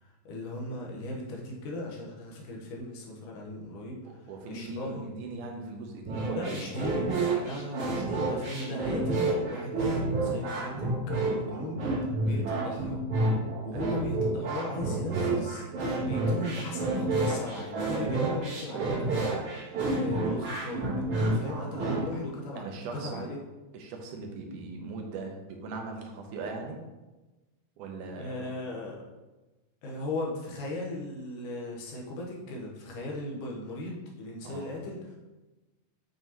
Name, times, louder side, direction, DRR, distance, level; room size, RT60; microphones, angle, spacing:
voice 1, 0.0-5.1 6.3-7.2 7.4-13.0 13.6-21.0 21.3-22.6 23.0-23.4 28.2-29.1 29.8-35.2, left 2 dB, 80° left, -2 dB, 2.8 m, -37 dB
voice 2, 4.0-6.7 12.2-12.5 13.7-13.9 21.8-22.0 22.5-23.3 23.7-26.8 27.8-28.5 34.4-34.7, right 3 dB, 80° right, 2 dB, 2.4 m, -40 dB
sound 1, 6.0-22.0, right 2 dB, 55° right, 2.4 m, -29 dB
7.7 x 5.7 x 3.0 m, 1.1 s
omnidirectional pair, 3.5 m